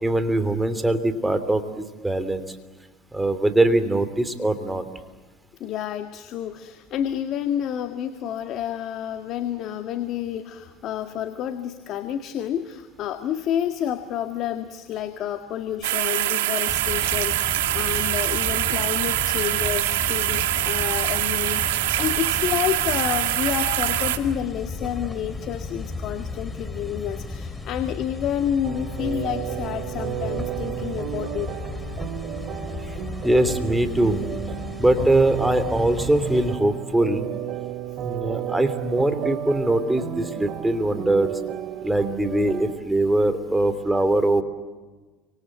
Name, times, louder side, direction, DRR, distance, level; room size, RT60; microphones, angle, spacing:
voice 1, 0.0-2.4 3.1-4.9 33.2-34.2 34.8-37.2 38.0-41.4 41.8-44.4, right 1 dB, 10° right, 10 dB, 3.0 m, -22 dB
voice 2, 5.6-31.5, left 10 dB, 55° left, 7 dB, 1.8 m, -29 dB
sound 1, 15.8-24.2, right 15 dB, 90° right, 2.2 m, -24 dB
sound 2, 16.7-36.6, left 3 dB, 15° left, 2.6 m, -35 dB
sound 3, 28.6-42.8, right 11 dB, 50° right, 2.4 m, -33 dB
30.0 x 25.5 x 7.5 m, 1.3 s
supercardioid pair, 105°, 0 cm